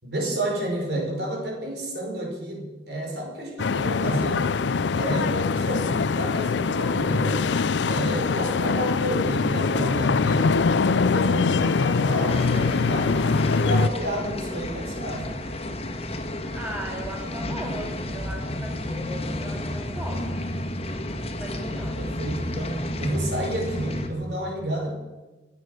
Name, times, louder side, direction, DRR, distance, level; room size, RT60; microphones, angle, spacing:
voice 1, 0.0-4.6 4.9-7.5 7.8-13.2 13.5-15.4 21.7-25.0, right 1 dB, 70° right, 1 dB, 5.0 m, -31 dB
sound 1, 3.6-13.9, left 4 dB, 90° left, 0.5 m, -23 dB
sound 2, 12.3-24.1, left 1 dB, 35° left, 1.7 m, -31 dB
voice 2, 16.5-20.4 21.4-21.9, equal, 10° right, 0 dB, 2.7 m, -37 dB
25.0 x 8.6 x 6.4 m, 1.2 s
head